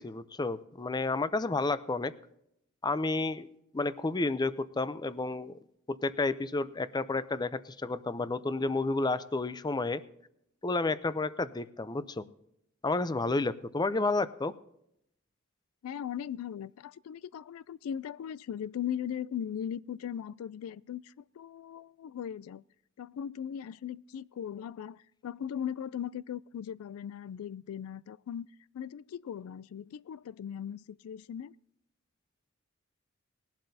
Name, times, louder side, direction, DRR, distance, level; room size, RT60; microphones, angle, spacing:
voice 1, 0.0-2.1 2.8-3.5 3.7-5.6 5.9-10.0 10.6-12.2 12.8-14.5, left 3 dB, 20° left, 0.5 m, -31 dB
voice 2, 15.8-22.6 23.0-28.5 28.7-31.5, left 9 dB, 80° left, 0.3 m, -38 dB
20.0 x 11.5 x 2.7 m
head